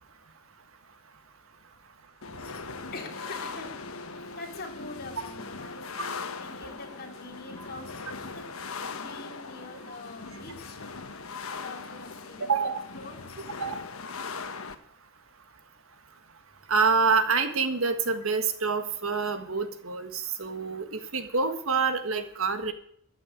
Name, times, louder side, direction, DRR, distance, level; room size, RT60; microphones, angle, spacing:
sound 1, 2.2-14.7, left 4 dB, 80° left, 1.2 m, -40 dB
voice 1, 2.9-3.7 4.3-5.8 6.4-8.5 8.9-10.8 11.5-13.2, left 2 dB, 45° left, 1 dB, 3.2 m, -44 dB
voice 2, 12.5-12.8 13.6-13.8 16.7-22.7, right 5 dB, 75° right, 9 dB, 1.6 m, -27 dB
13.5 x 7.0 x 9.6 m, 0.65 s
head